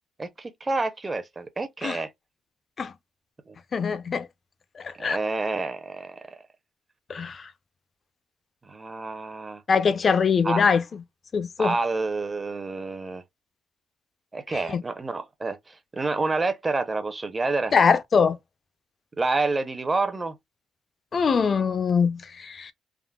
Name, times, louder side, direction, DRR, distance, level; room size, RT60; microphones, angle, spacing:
voice 1, 0.2-2.1 3.5-3.6 5.0-6.4 8.7-9.6 10.4-10.6 11.6-13.2 14.3-15.6 15.9-17.7 19.2-20.3, right 3 dB, 25° right, 0.7 m, -28 dB
voice 2, 3.7-4.3 4.8-5.2 7.1-7.5 9.7-11.0 11.3-11.7 14.5-14.8 17.7-18.4 21.1-22.7, left 6 dB, 45° left, 0.5 m, -23 dB
3.6 x 2.0 x 2.3 m
cardioid pair, 90°, 0 cm